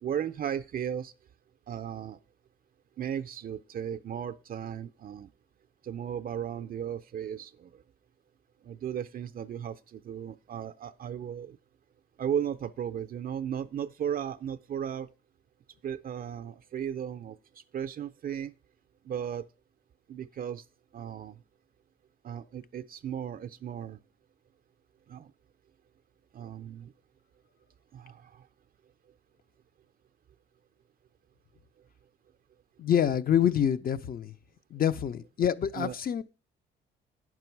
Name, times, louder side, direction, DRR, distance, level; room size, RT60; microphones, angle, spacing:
voice 1, 0.0-1.1 1.7-2.2 3.0-5.3 5.8-7.7 8.6-11.6 12.2-15.1 15.8-17.4 17.7-18.5 19.0-19.5 20.1-20.6 20.9-21.4 22.2-24.0 25.1-25.3 26.3-26.9 27.9-28.4 35.8-36.0, right 9 dB, 45° right, 0.4 m, -35 dB
voice 2, 32.8-34.3 34.7-36.2, left 9 dB, 45° left, 0.6 m, -26 dB
9.2 x 6.0 x 4.5 m
cardioid pair, 90°, 20 cm